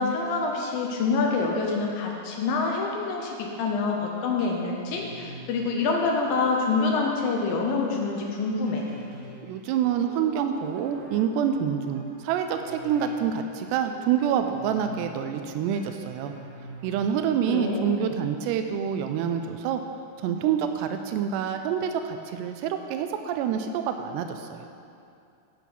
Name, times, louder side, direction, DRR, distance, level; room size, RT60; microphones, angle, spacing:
voice 1, 0.0-8.8 17.5-18.1, left 4 dB, 75° left, 0 dB, 2.3 m, -26 dB
sound 1, 4.4-17.3, right 1 dB, 55° right, 2.2 m, -47 dB
voice 2, 9.4-16.3 16.8-19.8 20.2-24.7, right 8 dB, 90° right, 7 dB, 2.7 m, -27 dB
12.0 x 6.0 x 6.0 m, 2.6 s
omnidirectional pair, 4.8 m